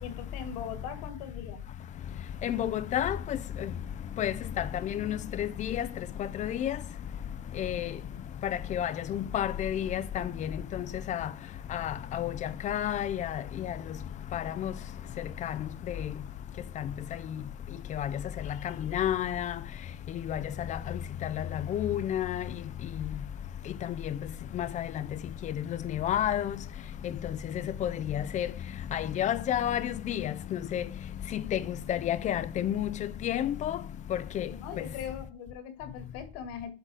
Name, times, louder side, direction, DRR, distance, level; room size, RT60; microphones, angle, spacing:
voice 1, 0.0-1.6 31.7-31.8 34.5-36.7, left 8 dB, 70° left, 2.1 m, -40 dB
voice 2, 2.4-3.2 4.2-4.3 4.9-5.8 6.4-6.8 7.6-7.9 8.7-10.2 11.1-11.2 11.7-12.3 12.6-13.3 14.3-14.7 18.0-18.1 18.9-19.5 20.3-20.4 21.7-22.4 24.6-24.8 25.9-26.5 27.8-28.5 28.9-30.3 30.7-30.8 31.3-31.4 31.9-32.9 33.2-33.7 34.4-34.5, left 10 dB, 25° left, 0.3 m, -30 dB
8.1 x 3.9 x 6.1 m
cardioid pair, 150°, 31 cm